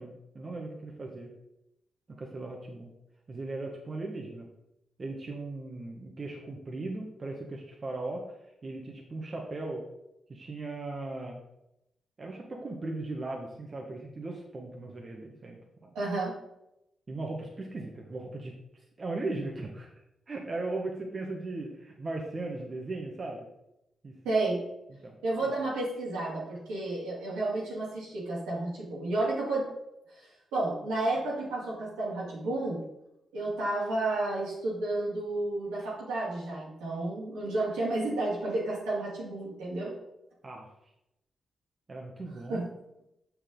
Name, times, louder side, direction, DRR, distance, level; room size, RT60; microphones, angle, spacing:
voice 1, 0.0-1.3 2.2-2.9 3.3-4.5 5.0-8.4 8.6-9.8 10.3-11.4 12.2-15.9 17.1-18.5 19.0-19.9 20.3-23.4 24.0-24.1 25.0-25.5 40.4-40.7 41.9-42.7, right 2 dB, 45° right, 0 dB, 1.5 m, -38 dB
voice 2, 15.9-16.3 24.2-24.6 25.2-29.7 30.2-32.8 33.3-39.9 42.5-42.6, right 2 dB, 85° right, -6 dB, 2.9 m, -31 dB
7.1 x 6.5 x 3.9 m, 0.85 s
hypercardioid pair, 40°, 0 cm